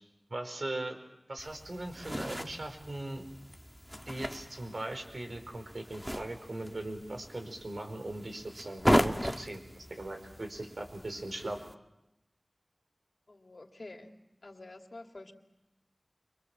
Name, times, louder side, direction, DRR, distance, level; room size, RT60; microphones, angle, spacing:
voice 1, 0.3-1.0 1.3-3.2 4.1-11.6, right 2 dB, 75° right, 5 dB, 4.9 m, -39 dB
sound 1, 1.4-11.7, equal, ahead, 1.5 m, -36 dB
voice 2, 13.3-14.2 14.4-15.3, left 2 dB, 70° left, 3 dB, 2.9 m, -48 dB
29.5 x 25.0 x 7.4 m, 0.88 s
wide cardioid pair, 45°, 0 cm